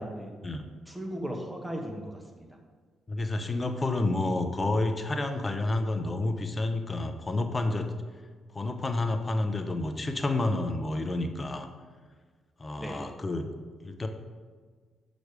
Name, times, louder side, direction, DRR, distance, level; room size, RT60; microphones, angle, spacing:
voice 1, 0.0-0.3 0.9-2.6 12.8-13.0, equal, 10° right, 2 dB, 1.5 m, -37 dB
voice 2, 3.1-7.9 8.5-11.7 12.6-13.5 13.8-14.1, left 2 dB, 30° left, 7 dB, 0.8 m, -29 dB
6.3 x 5.2 x 4.9 m, 1.5 s
hypercardioid pair, 50°, 0 cm